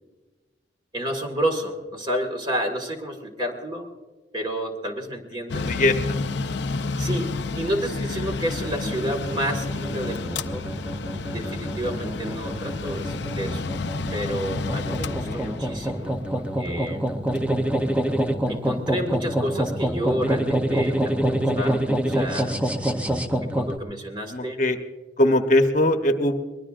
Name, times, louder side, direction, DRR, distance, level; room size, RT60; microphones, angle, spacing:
voice 1, 0.9-3.9 4.3-5.7 7.0-10.7 11.1-13.8 14.1-17.1 18.5-22.5 22.9-23.0 23.4-24.6, right 1 dB, 25° right, 4 dB, 1.9 m, -30 dB
Mechanical fan, 5.5-18.8, left 3 dB, 75° left, 0.6 m, -31 dB
voice 2, 5.6-5.9 15.3-15.5 24.3-24.8 25.2-26.4, left 1 dB, 45° left, 5 dB, 1.0 m, -21 dB
sound 1, 8.5-23.8, right 1 dB, 10° right, 0.7 m, -27 dB
22.5 x 20.5 x 2.5 m, 1.3 s
head